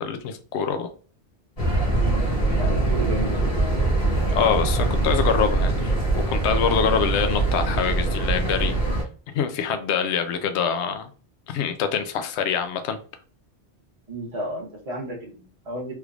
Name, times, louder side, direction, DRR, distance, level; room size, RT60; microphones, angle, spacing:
voice 1, 0.0-0.9 4.3-5.9 6.3-8.7 9.3-11.1 11.5-13.0, left 7 dB, 80° left, 8 dB, 0.8 m, -25 dB
sound 1, 1.6-9.0, right 2 dB, 60° left, 1.6 m, -23 dB
voice 2, 2.5-3.4 14.1-15.9, right 1 dB, 40° right, -3 dB, 0.8 m, -32 dB
3.4 x 3.0 x 2.4 m, 0.37 s
omnidirectional pair, 1.1 m